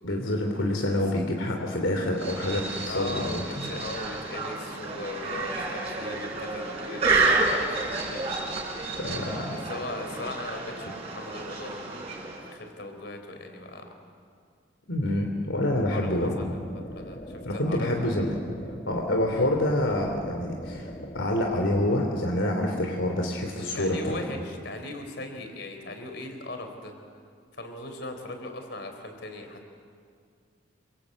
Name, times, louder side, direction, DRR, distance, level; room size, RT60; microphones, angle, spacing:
voice 1, 0.0-3.7 9.0-9.5 14.9-16.5 17.4-18.4 18.9-24.2, left 1 dB, 80° left, 2 dB, 3.0 m, -27 dB
sound 1, 2.1-12.5, right 3 dB, 30° right, 6.1 m, -30 dB
voice 2, 2.9-8.3 9.5-13.9 15.9-16.6 17.0-18.4 19.3-19.5 23.5-26.9 27.5-29.7, left 2 dB, 60° left, 5 dB, 4.2 m, -39 dB
sound 2, 15.7-21.9, left 1 dB, 30° left, 1.4 m, -42 dB
28.0 x 25.0 x 8.5 m, 2.1 s
head